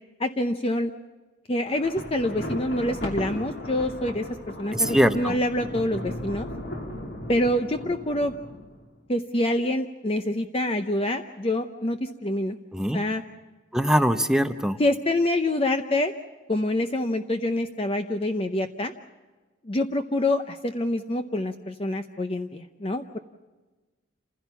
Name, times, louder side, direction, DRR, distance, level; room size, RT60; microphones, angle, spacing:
voice 1, 0.2-0.9 1.5-4.3 4.6-6.5 7.3-8.3 9.1-12.6 12.9-13.2 14.8-16.1 16.5-18.9 19.6-23.2, left 1 dB, 30° left, 7 dB, 0.7 m, -26 dB
Thunder, 1.7-8.9, left 1 dB, 60° left, 2.9 m, -36 dB
voice 2, 4.7-5.3 12.7-13.0 13.7-14.8, equal, 5° right, 8 dB, 0.7 m, -22 dB
28.5 x 16.0 x 7.0 m, 1.2 s
head